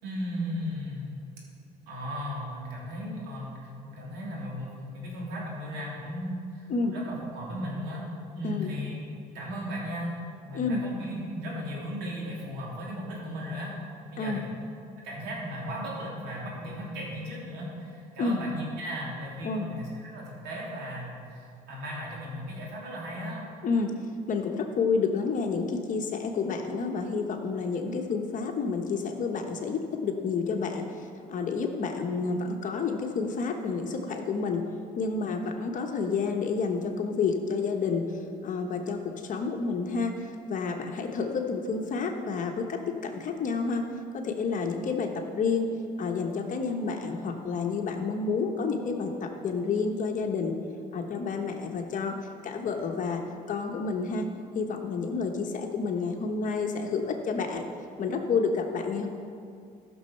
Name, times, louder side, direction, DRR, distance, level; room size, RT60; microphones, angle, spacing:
voice 1, 0.0-1.1 1.9-8.1 8.3-9.0 9.3-10.1 10.4-13.7 14.1-14.4 15.0-23.5, equal, 90° right, -3 dB, 3.2 m, -36 dB
voice 2, 23.6-23.9 24.3-34.6 35.0-38.1 38.4-39.0 39.3-43.9 44.1-45.1 45.4-50.6 50.9-52.1 52.4-53.2 53.5-54.3 54.5-57.6 58.0-59.1, left 4 dB, 50° left, 3 dB, 1.2 m, -29 dB
14.0 x 6.4 x 5.8 m, 2.4 s
cardioid pair, 110°, 17 cm